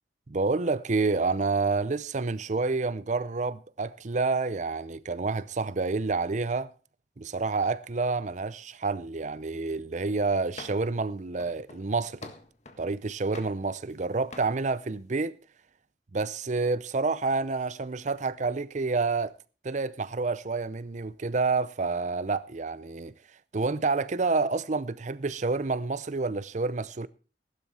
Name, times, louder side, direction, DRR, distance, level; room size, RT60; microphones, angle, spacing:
voice 1, 0.3-6.7 7.2-12.3 12.8-15.4 16.1-19.4 19.6-23.1 23.5-27.1, right 3 dB, 40° right, 0.6 m, -28 dB
sound 1, 10.6-11.0 11.4-12.9 13.3-14.0 14.3-14.6, left 3 dB, 40° left, 1.7 m, -46 dB
15.0 x 12.0 x 4.2 m
head